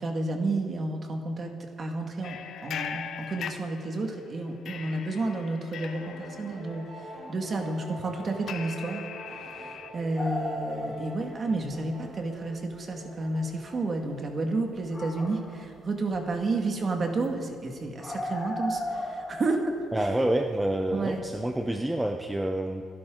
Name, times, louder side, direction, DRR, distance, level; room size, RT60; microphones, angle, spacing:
voice 1, 0.0-9.1 9.3-20.2 20.9-21.2, right 2 dB, 30° right, 3 dB, 1.8 m, -31 dB
sound 1, 2.2-4.2 4.6-9.9, left 7 dB, 55° left, 1.0 m, -40 dB
sound 2, 5.9-15.3, right 1 dB, 50° right, 4.6 m, -46 dB
sound 3, 10.2-11.9 12.1-12.2 12.7-12.8 13.5-13.6 14.7-15.8 16.1-16.4 16.8-16.9 17.2-17.3 17.5-17.6 18.0-21.0 21.3-21.6, left 1 dB, 15° left, 1.9 m, -35 dB
voice 2, 19.9-22.9, right 1 dB, 5° right, 4 dB, 0.6 m, -28 dB
27.5 x 11.5 x 3.8 m, 2.5 s
cardioid pair, 170°, 0 cm